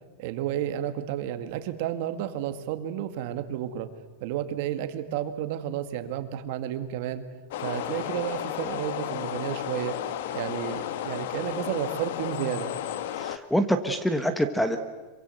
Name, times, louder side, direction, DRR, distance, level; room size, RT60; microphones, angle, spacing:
voice 1, 0.2-3.9 4.2-7.2 7.6-9.9 10.3-12.7, right 11 dB, 50° right, 9 dB, 1.9 m, -31 dB
sound 1, 7.5-13.4, left 11 dB, 60° left, 1.3 m, -33 dB
voice 2, 13.2-14.8, equal, ahead, 9 dB, 1.1 m, -25 dB
26.5 x 24.0 x 7.9 m, 1.3 s
supercardioid pair, 170°, 0 cm